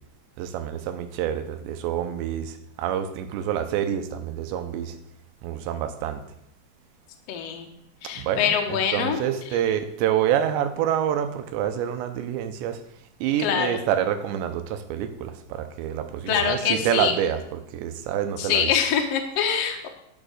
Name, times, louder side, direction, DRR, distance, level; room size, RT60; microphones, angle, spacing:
voice 1, 0.4-5.0 5.4-6.2 8.2-12.8 13.2-18.7, right 10 dB, 90° right, 9 dB, 3.1 m, -27 dB
voice 2, 7.3-7.7 8.0-9.2 13.4-13.8 16.3-17.1 18.4-19.9, left 7 dB, 85° left, 3 dB, 1.4 m, -24 dB
11.0 x 6.1 x 6.5 m, 0.77 s
omnidirectional pair, 5.0 m